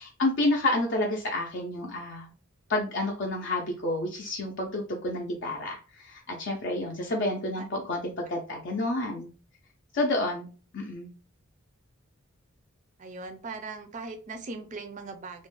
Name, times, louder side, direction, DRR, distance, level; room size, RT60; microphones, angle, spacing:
voice 1, 0.0-2.3 2.7-9.3 9.9-10.5 10.7-11.1, left 2 dB, 55° left, 0 dB, 0.5 m, -29 dB
voice 2, 13.0-15.5, right 3 dB, 35° right, 7 dB, 0.4 m, -39 dB
2.4 x 2.1 x 3.1 m, 0.37 s
head